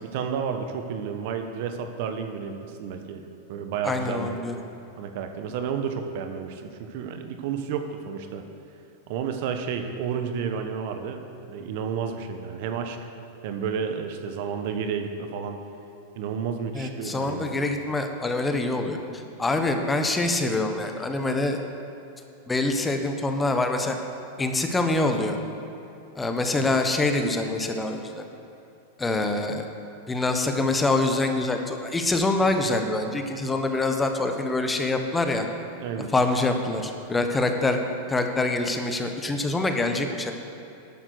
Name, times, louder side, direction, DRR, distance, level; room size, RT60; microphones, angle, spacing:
voice 1, 0.0-4.4 5.0-8.4 9.1-13.0 13.4-15.6 16.1-17.6 26.6-26.8 35.7-36.1, right 6 dB, 60° right, 6 dB, 1.1 m, -31 dB
voice 2, 3.8-4.6 16.7-19.0 19.4-21.6 22.5-24.0 24.4-25.4 26.1-28.2 29.0-29.7 30.1-35.5 36.1-37.8 38.1-40.3, left 2 dB, 15° left, 5 dB, 1.3 m, -25 dB
12.5 x 8.9 x 6.6 m, 2.8 s
hypercardioid pair, 95°, 0 cm